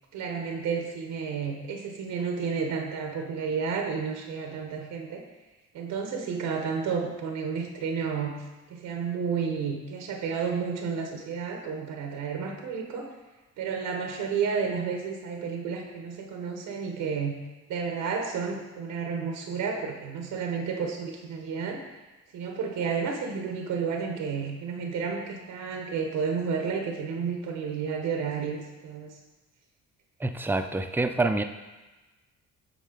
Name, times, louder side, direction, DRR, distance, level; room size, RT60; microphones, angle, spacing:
voice 1, 0.1-5.2 5.7-8.4 8.7-13.1 13.6-17.3 17.7-21.9 22.3-29.1, right 6 dB, 85° right, 2 dB, 0.9 m, -31 dB
voice 2, 30.2-31.4, right 2 dB, 5° right, 7 dB, 0.4 m, -26 dB
8.3 x 4.2 x 3.7 m, 1.2 s
cardioid pair, 90°, 30 cm